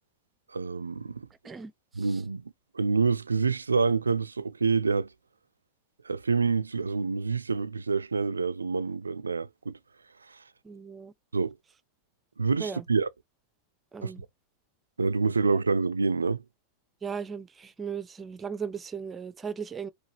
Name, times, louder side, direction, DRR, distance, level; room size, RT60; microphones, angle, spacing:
voice 1, 0.5-1.3 2.0-2.4 2.7-5.1 6.0-9.8 10.3-10.4 11.3-11.5 12.4-13.1 14.0-14.3 15.0-16.4, right 4 dB, 75° right, 0.3 m, -27 dB
voice 2, 10.6-11.1 12.6-12.8 13.9-14.2 17.0-19.9, right 6 dB, 20° right, 0.5 m, -37 dB
4.8 x 2.3 x 2.8 m
figure-of-eight pair, 90°, 0 cm